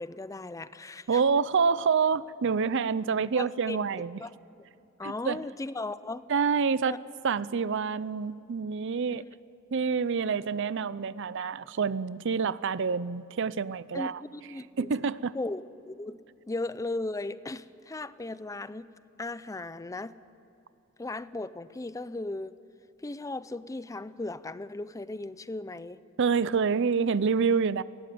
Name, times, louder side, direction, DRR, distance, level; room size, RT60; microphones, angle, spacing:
voice 1, 0.0-1.2 3.3-3.8 4.2-4.3 5.0-6.2 6.8-7.0 9.1-9.2 13.9-14.9 15.3-16.2 16.5-18.9 19.2-20.1 21.0-22.5 23.0-26.0, left 2 dB, 15° left, 15 dB, 0.5 m, -36 dB
voice 2, 1.1-4.2 5.0-5.4 6.3-7.0 7.2-9.2 9.7-14.2 14.8-15.3 26.2-27.8, right 5 dB, 60° right, 18 dB, 0.5 m, -27 dB
19.0 x 16.5 x 9.5 m, 2.8 s
head